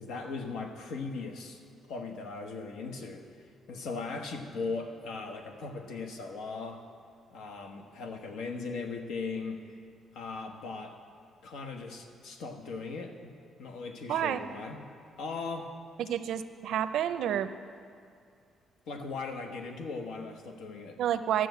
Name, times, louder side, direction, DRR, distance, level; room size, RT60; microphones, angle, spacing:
voice 1, 0.0-1.6 1.9-6.8 7.3-9.6 10.1-11.0 11.4-13.3 13.6-14.8 15.2-15.7 18.8-21.0, left 4 dB, 80° left, 4 dB, 1.1 m, -38 dB
voice 2, 14.1-14.4 16.0-17.5 21.0-21.5, right 10 dB, 70° right, 11 dB, 0.5 m, -29 dB
13.0 x 6.2 x 8.0 m, 2.3 s
cardioid pair, 170°, 0 cm